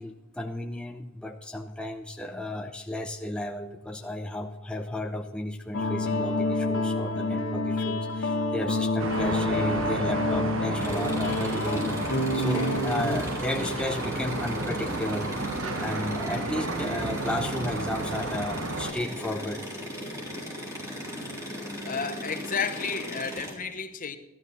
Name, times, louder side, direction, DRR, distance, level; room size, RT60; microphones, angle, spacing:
voice 1, 0.0-15.3 15.8-19.6, left 1 dB, 5° left, 3 dB, 0.7 m, -33 dB
sound 1, 5.7-13.2, left 2 dB, 75° left, 1.2 m, -28 dB
sound 2, 9.0-18.9, right 2 dB, 75° right, 1.2 m, -33 dB
sound 3, 10.8-23.5, equal, 15° right, 3.8 m, -37 dB
voice 2, 21.8-24.2, left 5 dB, 45° left, 8 dB, 1.0 m, -32 dB
12.5 x 12.5 x 4.1 m, 1.0 s
head